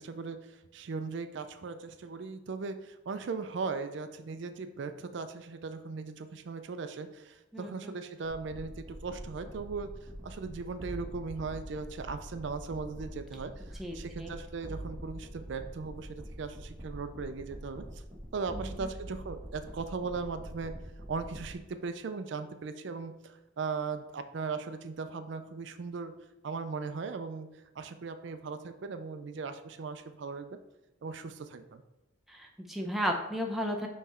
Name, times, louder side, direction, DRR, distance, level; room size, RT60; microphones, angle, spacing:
voice 1, 0.0-18.0 18.3-20.7 21.1-26.1 26.4-27.5 27.8-30.6 31.0-31.8, right 4 dB, 60° right, 9 dB, 0.4 m, -38 dB
voice 2, 7.5-7.9 13.8-14.3 18.5-18.9 32.3-33.9, equal, ahead, 1 dB, 0.6 m, -34 dB
sound 1, 8.2-21.5, equal, 20° right, 1.4 m, -45 dB
5.7 x 3.1 x 5.5 m, 1.0 s
head